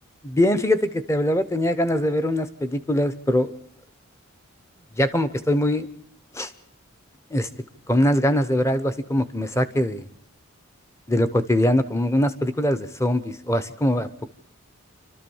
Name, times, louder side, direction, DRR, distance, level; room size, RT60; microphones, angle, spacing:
voice 1, 0.2-3.5 5.0-5.9 6.3-6.5 7.3-7.5 7.9-10.1 11.1-14.1, left 1 dB, 10° left, 12 dB, 0.8 m, -22 dB
28.0 x 13.0 x 7.1 m, 0.66 s
head